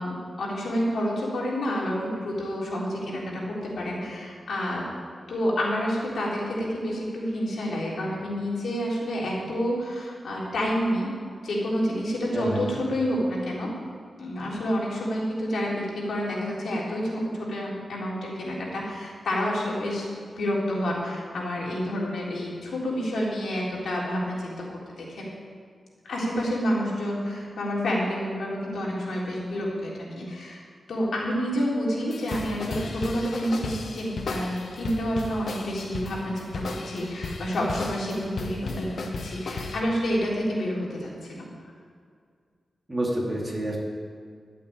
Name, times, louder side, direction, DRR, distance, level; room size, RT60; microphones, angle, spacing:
voice 1, 0.0-4.8 5.3-11.1 11.4-13.7 14.2-20.1 20.3-24.6 25.0-25.3 26.0-30.6 30.9-41.5, equal, 85° left, -4 dB, 3.9 m, -29 dB
voice 2, 12.3-12.6 42.9-43.8, right 1 dB, 15° right, -3 dB, 2.8 m, -28 dB
sound 1, 32.1-39.8, left 3 dB, 65° left, 1.2 m, -35 dB
12.0 x 8.4 x 8.9 m, 2.1 s
wide cardioid pair, 125°, 0 cm